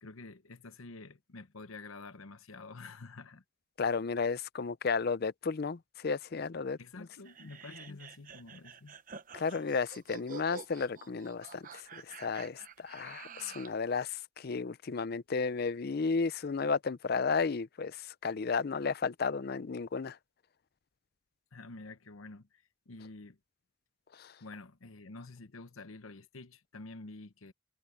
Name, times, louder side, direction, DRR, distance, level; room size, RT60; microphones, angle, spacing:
voice 1, 0.0-3.4 3.8-3.9 6.8-9.0 21.5-23.4 24.4-27.5, left 3 dB, 85° left, 0.9 m, -49 dB
voice 2, 3.8-7.1 9.3-20.2 24.2-24.3, left 5 dB, 50° left, 0.5 m, -33 dB
sound 1, 7.2-13.8, right 6 dB, 40° right, 0.9 m, -49 dB
head